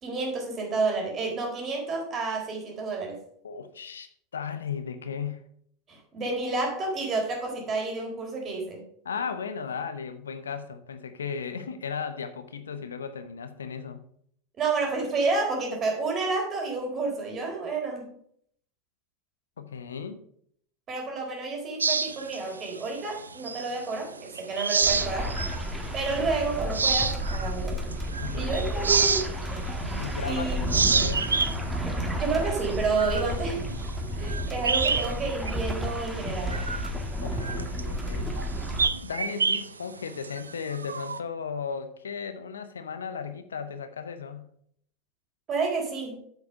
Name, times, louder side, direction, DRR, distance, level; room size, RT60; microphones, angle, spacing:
voice 1, 0.0-3.2 5.9-8.8 14.6-18.1 20.9-25.3 25.9-27.8 28.3-29.4 30.2-30.9 32.2-33.6 34.1-36.6 45.5-46.2, right 3 dB, 35° right, 3.9 m, -30 dB
voice 2, 3.4-5.4 9.0-14.0 19.6-20.2 28.2-28.6 30.0-31.3 37.2-38.4 39.0-44.5, left 6 dB, 80° left, 0.8 m, -36 dB
sound 1, 21.8-24.0 24.3-25.7 26.1-26.2 26.6-30.3 30.6-35.2 35.5-35.6 36.1-41.2, right 5 dB, 85° right, 0.4 m, -28 dB
sound 2, 24.8-38.9, equal, 5° right, 1.9 m, -32 dB
7.9 x 7.1 x 5.3 m
figure-of-eight pair, 85°, 0 cm